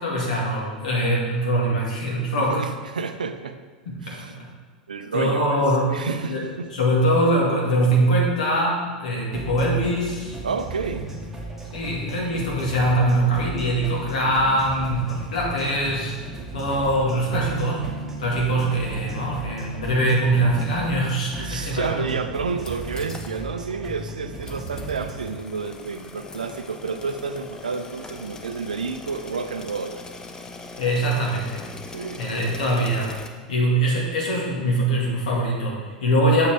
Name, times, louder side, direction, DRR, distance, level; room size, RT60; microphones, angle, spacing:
voice 1, 0.0-2.6 3.9-4.5 5.1-5.9 6.2-6.4 6.7-10.4 11.7-16.2 16.5-17.9 18.2-22.1 30.8-31.7 32.2-36.5, right 1 dB, 60° left, -3 dB, 1.9 m, -23 dB
voice 2, 2.4-3.6 4.0-4.3 4.9-6.7 10.4-11.1 18.4-18.5 21.4-30.0 31.9-32.2, right 5 dB, 75° right, 9 dB, 0.5 m, -30 dB
sound 1, 9.3-25.3, right 2 dB, 5° right, 1.6 m, -35 dB
sound 2, 22.6-23.4 23.7-23.8 24.4-33.3, left 3 dB, 15° left, 0.6 m, -41 dB
7.1 x 6.6 x 3.4 m, 1.4 s
figure-of-eight pair, 85°, 4 cm